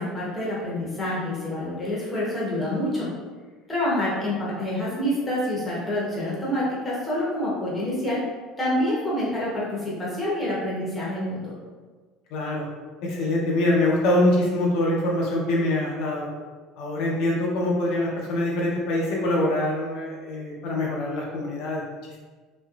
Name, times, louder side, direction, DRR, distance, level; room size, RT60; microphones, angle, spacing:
voice 1, 0.0-3.1 3.7-8.2 8.6-11.5, left 1 dB, 10° left, -7 dB, 0.8 m, -27 dB
voice 2, 12.3-12.7 13.0-16.3 16.8-22.2, left 1 dB, 55° left, -3 dB, 0.5 m, -24 dB
3.1 x 2.9 x 2.3 m, 1.4 s
cardioid pair, 180°, 0 cm